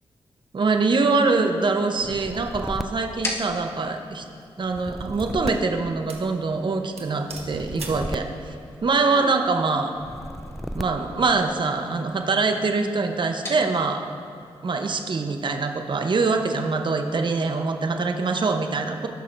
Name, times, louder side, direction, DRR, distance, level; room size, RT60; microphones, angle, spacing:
voice 1, 0.5-4.3 4.6-8.5 8.8-9.9 10.7-14.0 14.6-19.1, right 3 dB, 50° right, 5 dB, 0.8 m, -24 dB
sound 1, 1.7-16.1, left 1 dB, 25° left, 1.7 m, -43 dB
sound 2, 2.0-4.0 4.6-6.6 7.3-9.2 10.0-11.3, equal, ahead, 0.3 m, -36 dB
sound 3, 3.4-3.7 4.4-5.6 6.1-6.3 6.6-6.7 7.0-8.1, right 4 dB, 80° right, 1.1 m, -41 dB
17.5 x 6.3 x 2.6 m, 2.5 s
cardioid pair, 65°, 10 cm